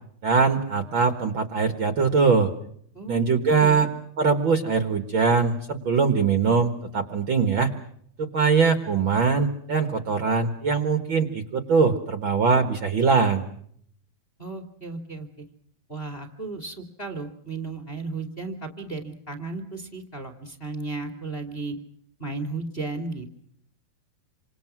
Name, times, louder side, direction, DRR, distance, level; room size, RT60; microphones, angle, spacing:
voice 1, 0.2-2.5 3.1-3.9 4.2-7.7 8.2-13.4, right 5 dB, 90° right, 8 dB, 1.0 m, -22 dB
voice 2, 3.5-3.9 14.4-15.3 15.9-21.8 22.2-23.4, right 3 dB, 20° left, 6 dB, 1.9 m, -34 dB
27.5 x 26.5 x 6.1 m, 0.67 s
omnidirectional pair, 4.7 m